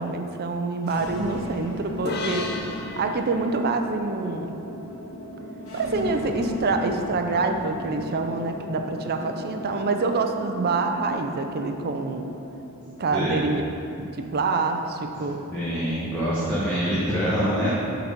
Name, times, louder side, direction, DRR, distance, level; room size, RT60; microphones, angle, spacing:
voice 1, 0.0-2.5 3.0-4.5 5.7-12.3 13.0-13.6 14.0-15.4, right 3 dB, 45° right, 5 dB, 0.5 m, -26 dB
sound 1, 0.8-16.8, equal, 65° left, 1.3 m, -38 dB
sound 2, 2.1-5.5, left 3 dB, 45° left, 0.6 m, -36 dB
voice 2, 15.5-17.7, equal, 10° left, -10 dB, 1.1 m, -25 dB
7.2 x 4.0 x 5.1 m, 2.8 s
head